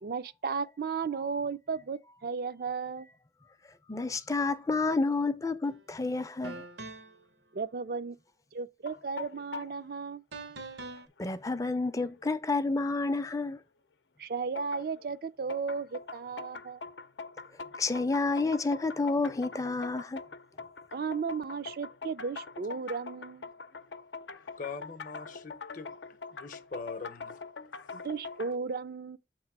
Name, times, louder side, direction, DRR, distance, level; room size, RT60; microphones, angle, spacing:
voice 1, 0.0-3.1 7.5-8.2 8.5-10.2 14.2-16.8 20.9-23.5 27.9-29.2, right 5 dB, 55° right, 0.4 m, -35 dB
voice 2, 3.9-6.6 11.2-13.6 17.8-20.2, left 3 dB, 20° left, 0.4 m, -30 dB
sound 1, 5.6-5.8 6.4-7.2 10.3-11.1, right 3 dB, 80° right, 0.9 m, -43 dB
sound 2, 8.8-9.8 11.0-11.1 11.5-11.6 12.2-12.3 14.5-15.0 15.5-28.5, left 4 dB, 90° left, 0.6 m, -44 dB
voice 3, 24.6-27.4, left 4 dB, 50° left, 0.7 m, -42 dB
8.0 x 3.1 x 5.9 m
head